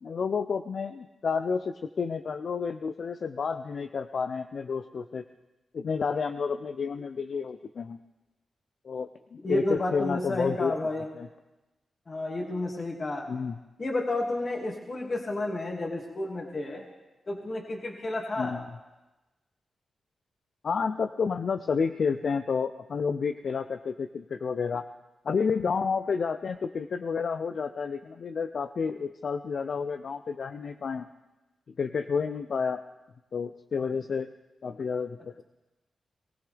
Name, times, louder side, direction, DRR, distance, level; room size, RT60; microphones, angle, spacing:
voice 1, 0.0-5.2 5.7-8.0 8.8-10.7 11.1-11.3 13.3-13.6 18.4-18.6 20.6-24.8 25.2-31.1 31.8-32.8 33.3-34.3 34.6-35.4, left 5 dB, 70° left, 9 dB, 0.5 m, -30 dB
voice 2, 9.4-11.0 12.1-13.3 13.8-16.8 17.3-18.5, left 2 dB, 45° left, 0 dB, 2.4 m, -31 dB
22.5 x 15.5 x 3.4 m, 1.1 s
cardioid pair, 60°, 0 cm